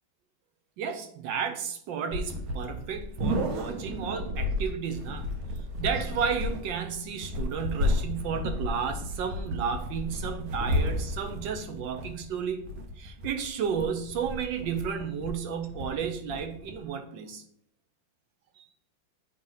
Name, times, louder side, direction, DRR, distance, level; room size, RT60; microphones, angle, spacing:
voice 1, 0.8-5.3 5.8-12.7 13.0-17.4 18.6-18.7, right 7 dB, 70° right, 6 dB, 1.5 m, -32 dB
sound 1, 2.1-16.8, left 1 dB, 85° right, 1.8 m, -33 dB
7.7 x 2.9 x 5.6 m, 0.65 s
omnidirectional pair, 2.2 m